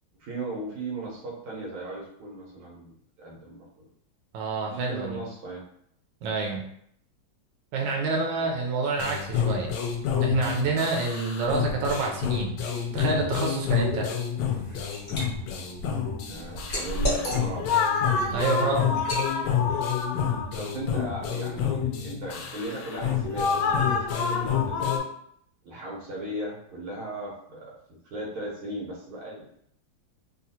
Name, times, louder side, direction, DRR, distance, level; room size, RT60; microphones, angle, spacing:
voice 1, 0.2-3.9 4.7-5.6 8.4-8.5 16.3-18.0 20.0-20.2 20.5-25.1 25.6-27.8 28.1-29.6, right 1 dB, 90° right, -3 dB, 1.8 m, -37 dB
voice 2, 4.3-5.2 6.2-6.6 7.7-9.7 10.2-12.6 12.9-14.1 18.3-18.9, right 4 dB, 75° right, -1 dB, 1.3 m, -27 dB
sound 1, 9.0-25.0, left 7 dB, 75° left, 1.0 m, -28 dB
Liquid, 14.4-15.3 15.7-17.8 18.2-18.4 19.0-19.3, equal, 35° left, 0.8 m, -31 dB
3.7 x 2.4 x 2.7 m, 0.69 s
omnidirectional pair, 2.3 m